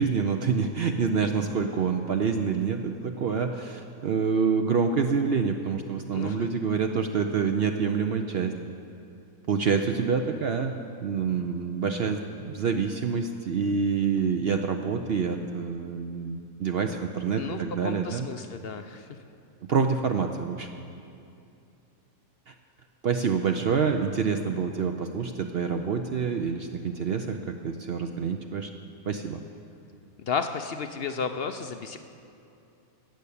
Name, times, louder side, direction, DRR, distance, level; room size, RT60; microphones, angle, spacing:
voice 1, 0.0-8.5 9.5-10.7 11.0-18.3 19.7-20.7 22.5-22.6 23.0-28.7 29.1-29.4, right 5 dB, 60° right, 5 dB, 0.6 m, -27 dB
voice 2, 6.1-6.5 17.4-19.1 30.2-32.0, left 5 dB, 60° left, 8 dB, 0.6 m, -33 dB
15.5 x 6.8 x 8.4 m, 2.6 s
omnidirectional pair, 1.6 m